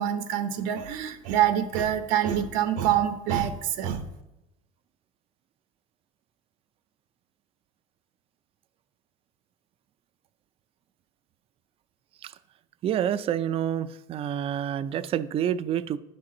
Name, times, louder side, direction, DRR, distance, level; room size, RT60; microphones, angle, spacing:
voice 1, 0.0-4.0, right 10 dB, 75° right, 9 dB, 0.8 m, -26 dB
voice 2, 12.8-16.0, right 10 dB, 35° right, 14 dB, 0.4 m, -28 dB
10.0 x 6.0 x 3.8 m, 0.96 s
supercardioid pair, 125°, 17 cm